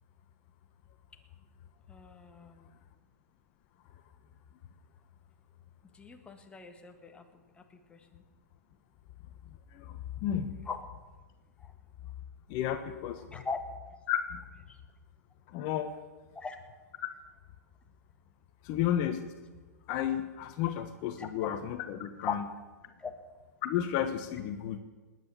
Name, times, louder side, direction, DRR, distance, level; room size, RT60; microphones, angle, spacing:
voice 1, 1.9-2.7 5.9-7.2 7.6-7.7 7.9-8.2 10.6-10.9 11.6-11.7 13.3-13.6 14.7-14.8 16.3-16.6 21.2-21.3 22.2-22.3 23.0-23.1, left 5 dB, 10° left, 4 dB, 1.7 m, -40 dB
voice 2, 9.7-10.5 12.5-13.2 14.1-14.4 15.5-15.9 18.6-19.2 19.9-22.4 23.6-24.8, left 10 dB, 45° left, 8 dB, 1.2 m, -32 dB
20.0 x 9.5 x 7.2 m, 1.3 s
hypercardioid pair, 115°, 9 cm